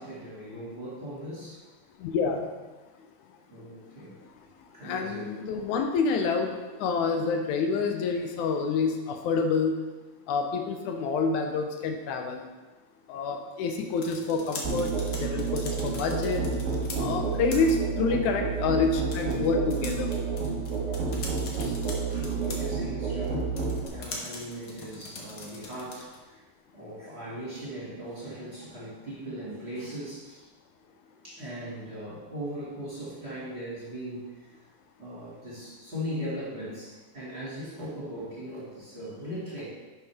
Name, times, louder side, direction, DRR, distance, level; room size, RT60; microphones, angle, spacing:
voice 1, 0.0-1.6 3.5-4.2 4.7-5.3 16.9-17.3 21.5-21.6 22.1-23.5 23.9-26.4 26.7-30.4 31.2-34.5 35.0-39.7, equal, 25° right, -9 dB, 2.0 m, -39 dB
voice 2, 2.0-2.5 4.8-9.8 10.3-12.4 13.1-14.9 15.2-16.4 17.0-20.1 21.6-21.7, left 4 dB, 80° left, 4 dB, 2.2 m, -28 dB
sound 1, 13.8-26.3, left 2 dB, 60° left, 1.1 m, -43 dB
Musical instrument, 14.6-23.9, right 5 dB, 60° right, 0.7 m, -30 dB
10.5 x 5.5 x 3.5 m, 1.2 s
omnidirectional pair, 3.4 m